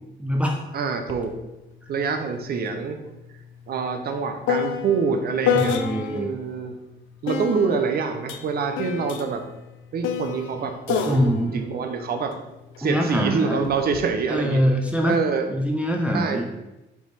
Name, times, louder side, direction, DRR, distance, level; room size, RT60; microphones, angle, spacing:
voice 1, 0.2-0.6 5.5-6.3 11.1-11.5 12.8-13.6 14.3-15.2 15.5-16.4, equal, 5° right, 0 dB, 0.5 m, -23 dB
voice 2, 0.7-1.3 1.9-3.0 3.7-5.8 6.1-6.8 7.2-9.4 9.9-12.3 12.8-14.6 15.1-15.4 16.1-16.4, right 5 dB, 50° right, 6 dB, 0.6 m, -26 dB
banjo tuning, 1.1-1.2 1.6-6.3 7.3-12.8 13.6-14.1, left 8 dB, 80° left, 0.4 m, -30 dB
3.5 x 3.0 x 4.1 m, 0.99 s
cardioid pair, 90°, 20 cm